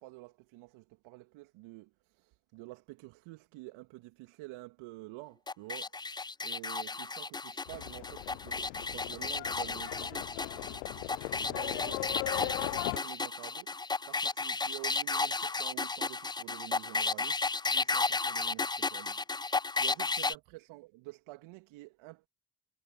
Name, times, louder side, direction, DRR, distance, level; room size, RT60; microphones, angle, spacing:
voice 1, 0.0-5.9 6.4-17.4 17.7-22.3, right 21 dB, 70° right, 2.9 m, -49 dB
sound 1, 5.5-20.3, left 3 dB, 10° left, 0.5 m, -33 dB
Livestock farm animals working animals, 7.7-13.0, left 26 dB, 75° left, 0.8 m, -38 dB
figure-of-eight pair, 45°, 50 cm